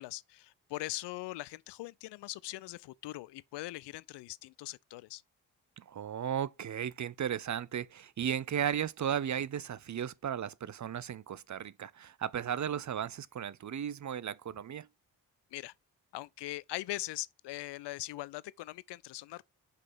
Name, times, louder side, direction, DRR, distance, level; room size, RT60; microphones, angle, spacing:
voice 1, 0.0-5.2 15.5-15.7 16.1-19.4, left 17 dB, 75° left, 0.6 m, -41 dB
voice 2, 5.8-14.9, right 9 dB, 45° right, 0.7 m, -35 dB
5.7 x 5.1 x 5.6 m
hypercardioid pair, 40°, 42 cm